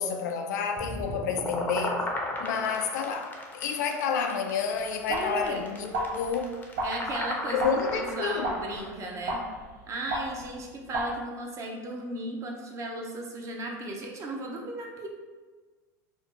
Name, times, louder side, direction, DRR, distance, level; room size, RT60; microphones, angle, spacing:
voice 1, 0.0-2.0 2.4-6.5 7.5-8.5, left 6 dB, 85° left, 0.3 m, -30 dB
sound 1, 0.8-8.9, left 2 dB, 20° left, 0.5 m, -35 dB
sound 2, 4.8-11.1, right 1 dB, 75° right, 0.5 m, -34 dB
voice 2, 5.1-5.6 6.8-7.7 7.9-9.4 9.9-15.1, right 1 dB, 35° right, 0.6 m, -35 dB
2.6 x 2.0 x 3.5 m
supercardioid pair, 105°, 9 cm